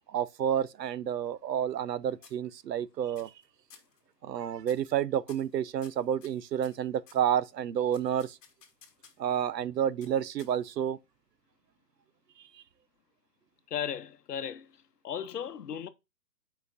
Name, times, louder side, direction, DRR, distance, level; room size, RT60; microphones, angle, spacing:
voice 1, 0.1-3.3 4.2-8.4 9.2-11.0 12.5-12.6, right 9 dB, 85° right, 0.7 m, -30 dB
sound 1, 1.0-1.9 2.2-2.8 3.1-3.4 3.7-4.0 4.6-4.9 5.3-7.3 7.9-9.3 10.0-10.8, left 7 dB, 50° left, 1.5 m, -57 dB
voice 2, 13.7-15.9, left 8 dB, 75° left, 0.9 m, -36 dB
7.1 x 5.1 x 2.6 m
hypercardioid pair, 165°, 48 cm